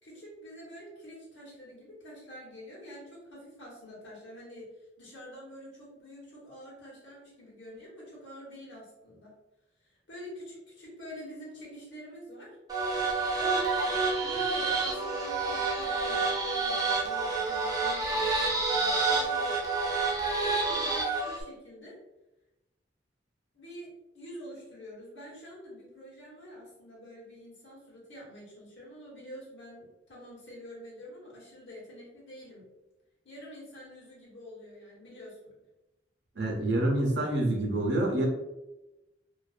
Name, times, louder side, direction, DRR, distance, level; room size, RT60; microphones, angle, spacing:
voice 1, 0.0-4.7 5.0-9.3 9.8-12.6 13.4-13.9 14.2-19.6 20.4-21.9 23.5-32.7 33.2-35.5, equal, 80° left, -5 dB, 1.2 m, -47 dB
sound 1, 12.7-21.4, right 3 dB, 20° right, 0.4 m, -28 dB
voice 2, 36.4-38.3, right 1 dB, 75° right, -1 dB, 0.7 m, -27 dB
2.4 x 2.2 x 2.4 m, 0.97 s
head